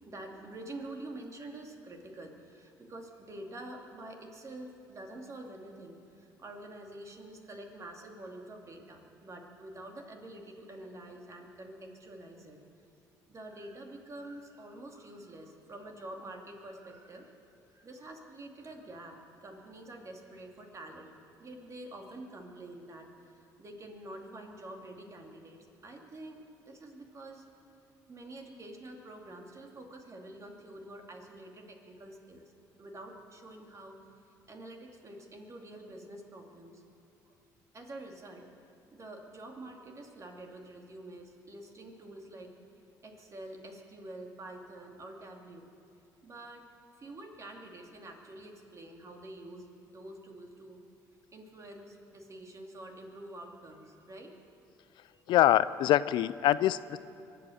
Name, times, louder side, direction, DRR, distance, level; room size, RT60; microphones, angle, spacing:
voice 1, 0.0-12.6 13.3-17.4 17.7-21.1 21.4-27.4 28.1-32.4 32.8-34.0 34.3-36.8 37.3-37.4 37.7-38.5 38.9-42.5 43.0-45.7 46.2-46.7 46.9-50.8 51.3-54.4, right 1 dB, 40° right, 2 dB, 2.5 m, -47 dB
voice 2, 55.3-57.0, left 13 dB, 70° left, 17 dB, 0.4 m, -24 dB
23.0 x 8.7 x 6.5 m, 2.5 s
supercardioid pair, 70°, 8 cm